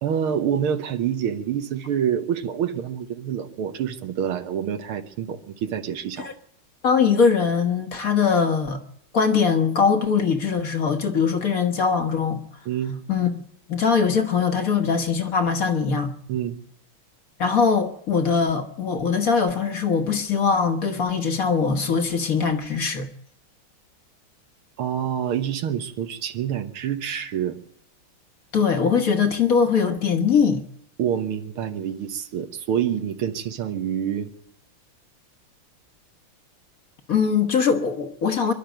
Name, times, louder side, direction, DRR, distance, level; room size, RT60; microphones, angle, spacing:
voice 1, 0.0-6.3 12.7-13.0 16.3-16.6 24.8-27.6 31.0-34.3, right 9 dB, 90° right, 2.1 m, -27 dB
voice 2, 6.8-8.8 9.1-12.4 13.1-13.4 13.7-16.1 17.4-23.1 28.5-30.6 37.1-38.5, left 6 dB, 45° left, 1.5 m, -21 dB
24.0 x 11.5 x 9.2 m
omnidirectional pair, 2.3 m